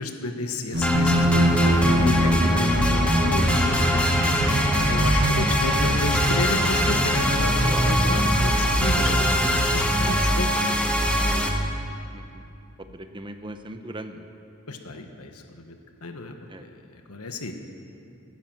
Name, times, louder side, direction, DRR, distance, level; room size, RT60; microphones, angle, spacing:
voice 1, 0.0-4.0 4.8-10.8 14.7-15.7 16.0-17.5, left 2 dB, 90° left, 5 dB, 1.3 m, -32 dB
sound 1, 0.7-9.7, equal, 55° right, 1.9 m, -24 dB
sound 2, 0.8-11.5, equal, 5° left, 1.2 m, -23 dB
voice 2, 11.2-11.6 12.1-12.4 12.9-14.2 16.5-16.6, right 1 dB, 20° right, 7 dB, 0.9 m, -38 dB
18.5 x 10.0 x 7.7 m, 2.7 s
head